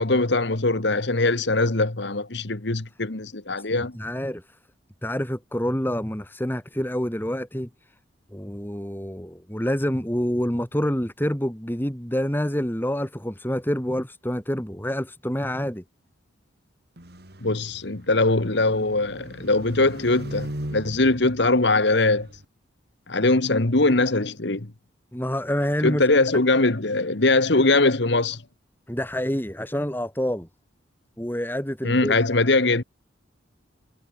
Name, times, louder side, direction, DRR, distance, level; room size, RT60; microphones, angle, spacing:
voice 1, 0.0-3.9 17.4-22.3 23.1-24.7 25.8-28.4 31.8-32.8, left 2 dB, 60° left, 1.5 m, -21 dB
voice 2, 3.7-4.6 5.0-7.7 8.3-15.8 25.1-26.0 28.9-30.5 31.2-32.1, equal, 10° left, 2.4 m, -27 dB
sound 1, 17.0-22.4, right 1 dB, 55° right, 3.6 m, -39 dB
head